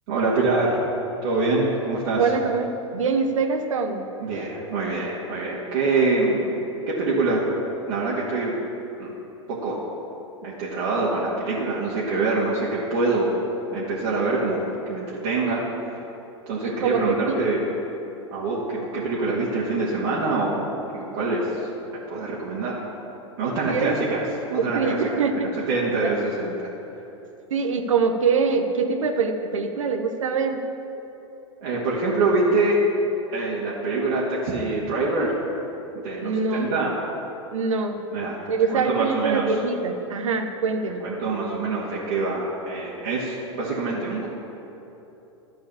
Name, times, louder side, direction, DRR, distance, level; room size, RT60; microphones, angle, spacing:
voice 1, 0.1-0.8 1.2-2.3 4.2-6.6 6.9-7.4 7.9-8.5 9.0-9.1 9.5-9.8 10.4-13.3 13.7-14.6 14.9-15.6 16.5-17.6 18.3-21.7 22.1-22.8 23.4-24.2 24.5-25.2 25.6-26.7 31.6-32.8 33.3-35.3 36.0-36.9 38.1-38.4 38.7-39.4 41.0-44.3, right 3 dB, 60° right, -7 dB, 1.9 m, -25 dB
voice 2, 2.2-4.1 4.3-4.5 16.6-17.4 23.6-24.0 24.6-25.5 26.0-26.1 27.5-30.6 36.2-36.8 37.5-38.0 38.5-41.0, right 5 dB, 75° right, 6 dB, 0.9 m, -24 dB
12.0 x 4.7 x 7.2 m, 3.0 s
hypercardioid pair, 95°, 17 cm